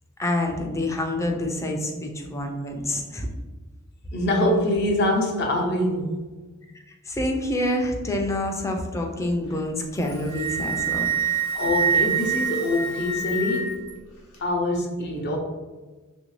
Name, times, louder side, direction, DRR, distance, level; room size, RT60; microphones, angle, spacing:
voice 1, 0.2-3.3 7.1-11.1, left 1 dB, 15° left, 2 dB, 0.4 m, -27 dB
voice 2, 4.1-6.2 11.5-13.8 14.4-15.4, left 1 dB, 50° left, 1 dB, 0.6 m, -24 dB
Wind instrument woodwind instrument, 9.9-13.9, right 7 dB, 80° left, 0.8 m, -26 dB
3.1 x 2.6 x 3.1 m, 1.3 s
head